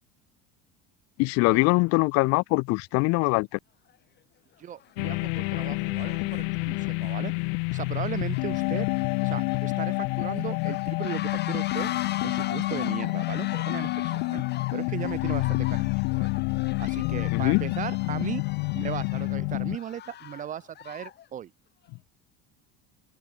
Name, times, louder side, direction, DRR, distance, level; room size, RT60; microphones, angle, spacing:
voice 1, 1.2-3.6 17.3-17.6, left 26 dB, 55° left, 0.5 m, -23 dB
sound 1, 3.9-4.0 4.7-4.9 5.3-21.3, left 11 dB, 35° left, 2.1 m, -41 dB
voice 2, 4.6-7.3 7.7-8.9 9.2-11.9 12.2-14.4 14.7-16.3 16.8-18.4 18.7-21.5, right 10 dB, 25° right, 0.5 m, -37 dB
sound 2, 5.0-19.8, left 40 dB or more, 70° left, 1.0 m, -28 dB
open air
cardioid pair, 165°, 32 cm